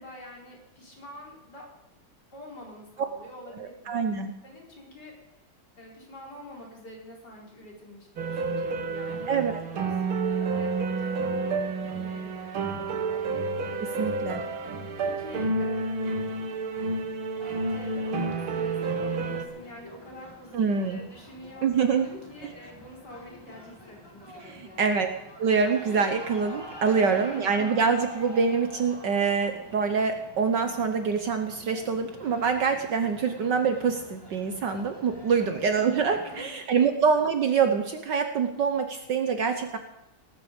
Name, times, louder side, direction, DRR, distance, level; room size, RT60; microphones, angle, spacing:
voice 1, 0.0-1.6 2.3-5.4 5.8-13.2 14.6-16.5 17.7-24.9 26.9-27.5 35.3-35.6 36.2-36.9, left 1 dB, 50° left, -2 dB, 5.0 m, -46 dB
voice 2, 3.6-4.3 9.3-9.6 13.8-14.4 20.5-21.0 21.6-22.1 24.5-39.8, right 5 dB, 60° right, 7 dB, 1.6 m, -25 dB
sound 1, 8.2-19.5, right 3 dB, 85° right, 2.4 m, -30 dB
sound 2, 17.4-36.4, equal, 10° left, 1.8 m, -47 dB
19.0 x 13.5 x 5.3 m, 0.86 s
omnidirectional pair, 2.2 m